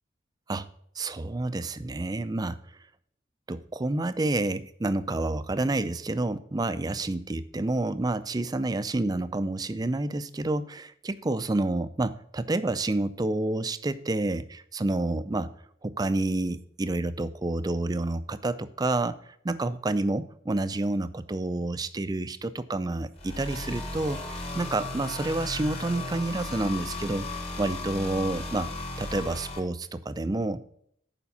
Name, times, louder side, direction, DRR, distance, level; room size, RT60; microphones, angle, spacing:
voice 1, 1.0-2.6 3.5-15.5 15.8-19.2 19.4-28.7 29.0-30.6, right 2 dB, 20° right, 13 dB, 0.4 m, -29 dB
sound 1, 23.2-29.6, left 2 dB, 35° left, 1.4 m, -35 dB
7.0 x 5.1 x 6.9 m, 0.67 s
head